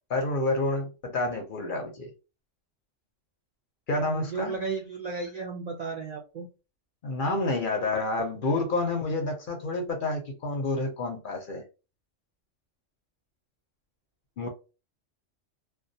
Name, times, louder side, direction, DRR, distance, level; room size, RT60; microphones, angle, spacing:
voice 1, 0.1-2.1 3.9-4.5 7.0-11.6 14.4-14.5, left 2 dB, 55° left, 0.6 m, -29 dB
voice 2, 4.1-6.5, right 4 dB, 65° right, 0.4 m, -34 dB
2.3 x 2.2 x 2.6 m
omnidirectional pair, 1.3 m